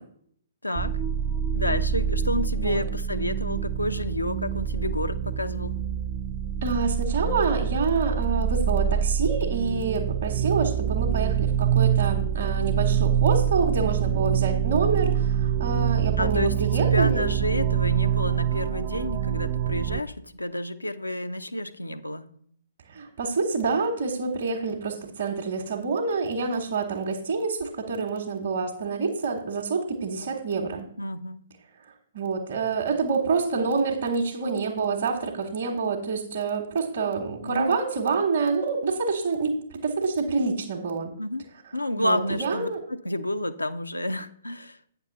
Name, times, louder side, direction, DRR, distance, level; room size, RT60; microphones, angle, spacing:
voice 1, 0.6-0.9 1.5-5.8 16.2-22.3 31.0-31.4 37.4-37.8 41.2-41.5 41.7-44.8, left 1 dB, 85° left, 9 dB, 0.6 m, -30 dB
sound 1, 0.8-20.0, right 8 dB, 30° right, 0.4 m, -25 dB
voice 2, 6.6-17.3 22.9-30.9 32.1-41.1 42.0-42.8, right 4 dB, 55° right, -1 dB, 1.3 m, -27 dB
8.8 x 6.7 x 4.1 m, 0.65 s
figure-of-eight pair, 120°, 0 cm